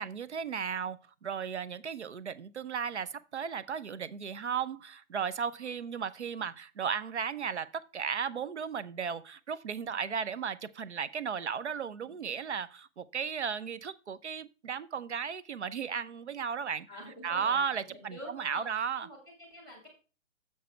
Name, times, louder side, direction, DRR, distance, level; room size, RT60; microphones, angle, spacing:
voice 1, 0.0-16.9 17.2-19.1, right 7 dB, 55° right, 0.7 m, -35 dB
voice 2, 16.9-19.9, equal, 10° right, 1.4 m, -47 dB
7.4 x 6.9 x 4.4 m
hypercardioid pair, 180°, 40 cm